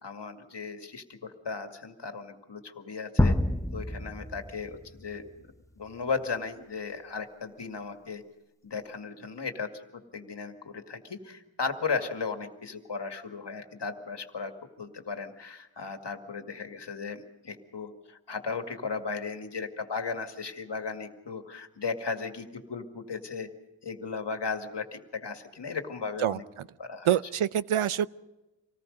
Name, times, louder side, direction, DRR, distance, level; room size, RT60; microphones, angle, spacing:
voice 1, 0.0-3.3 3.7-5.3 5.8-8.2 8.6-14.5 14.8-23.5 23.8-26.4 26.8-27.1, left 4 dB, 55° left, 6 dB, 2.1 m, -36 dB
sound 1, 3.2-5.1, left 1 dB, 5° left, 0.7 m, -27 dB
voice 2, 26.2-26.7 27.0-28.1, right 10 dB, 80° right, 17 dB, 0.7 m, -26 dB
26.5 x 19.0 x 5.3 m, 1.0 s
wide cardioid pair, 110°, 49 cm